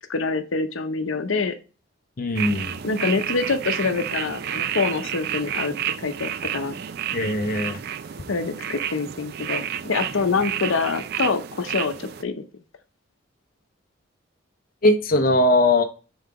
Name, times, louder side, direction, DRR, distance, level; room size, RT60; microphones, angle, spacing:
voice 1, 0.1-1.5 2.8-6.7 8.3-12.4, left 4 dB, 80° left, 8 dB, 0.7 m, -25 dB
voice 2, 2.2-2.7 7.1-7.8 14.8-15.8, left 1 dB, 45° left, 4 dB, 0.7 m, -20 dB
sound 1, 2.3-12.2, right 9 dB, 50° right, 0.3 m, -30 dB
5.7 x 3.9 x 4.8 m, 0.34 s
head